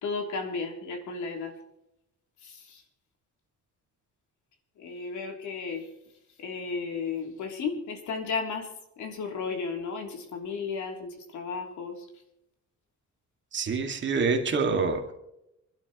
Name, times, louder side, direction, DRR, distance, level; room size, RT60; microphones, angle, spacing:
voice 1, 0.0-1.5 2.4-2.8 4.8-5.9 6.4-8.7 9.0-12.1, left 4 dB, 85° left, 3 dB, 3.2 m, -34 dB
voice 2, 13.5-15.1, right 4 dB, 40° right, 3 dB, 2.1 m, -26 dB
26.0 x 12.0 x 3.1 m, 0.84 s
cardioid pair, 175°, 29 cm